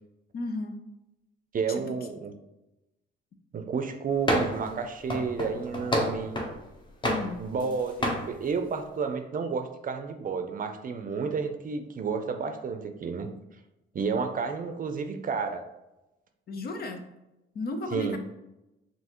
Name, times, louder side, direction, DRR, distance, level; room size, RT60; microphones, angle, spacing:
voice 1, 0.3-0.8 1.7-2.0 7.0-7.5 16.5-17.1 17.5-18.2, left 2 dB, 50° left, 5 dB, 0.7 m, -34 dB
voice 2, 1.5-2.3 3.5-6.3 7.4-13.3 13.9-15.6 17.9-18.2, right 5 dB, 45° right, 7 dB, 0.6 m, -31 dB
sound 1, 4.3-4.7 5.1-6.6 7.0-7.7 8.0-8.3, equal, 25° left, 1.0 m, -28 dB
5.4 x 2.7 x 3.0 m, 0.95 s
cardioid pair, 90°, 20 cm